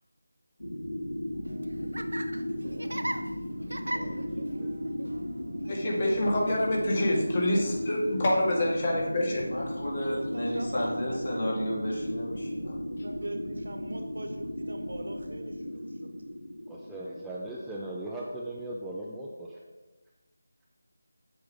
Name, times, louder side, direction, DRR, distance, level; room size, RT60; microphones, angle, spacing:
sound 1, 0.6-18.2, equal, 85° left, 1.6 m, -36 dB
Laughter, 1.3-8.9, right 1 dB, 85° right, 0.6 m, -41 dB
voice 1, 3.9-4.8 16.7-19.7, right 1 dB, 5° right, -6 dB, 0.5 m, -39 dB
voice 2, 5.7-9.4, left 1 dB, 35° left, -2 dB, 1.9 m, -26 dB
voice 3, 9.5-13.0, equal, 60° left, -3 dB, 2.8 m, -33 dB
voice 4, 10.1-11.8 12.9-16.1, right 1 dB, 70° right, 5 dB, 1.3 m, -42 dB
7.7 x 7.2 x 3.7 m, 1.2 s
figure-of-eight pair, 165°, 0 cm